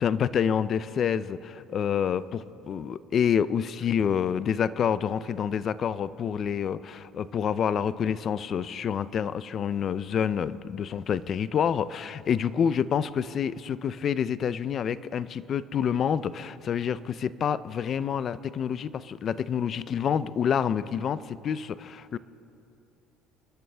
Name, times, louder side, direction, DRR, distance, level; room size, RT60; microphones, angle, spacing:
voice 1, 0.0-22.2, left 8 dB, 30° left, 16 dB, 0.4 m, -28 dB
28.5 x 12.5 x 3.4 m, 2.7 s
cardioid pair, 175°, 0 cm